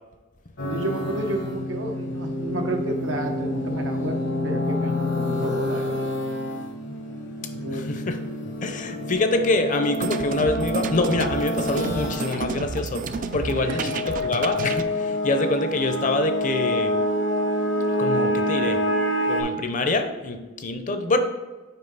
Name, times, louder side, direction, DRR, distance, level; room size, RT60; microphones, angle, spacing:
sound 1, 0.6-19.4, left 1 dB, 65° left, 1.0 m, -27 dB
voice 1, 0.7-4.2 4.4-6.1 7.5-7.8 13.6-13.9, right 1 dB, 90° right, 4 dB, 0.9 m, -31 dB
voice 2, 7.7-8.2 8.6-13.0 13.3-13.8 14.2-16.9 18.0-18.8 19.2-21.2, left 2 dB, 45° left, 7 dB, 0.6 m, -25 dB
sound 2, 9.8-14.8, right 5 dB, 45° right, 0.3 m, -31 dB
5.5 x 4.6 x 3.9 m, 1.2 s
head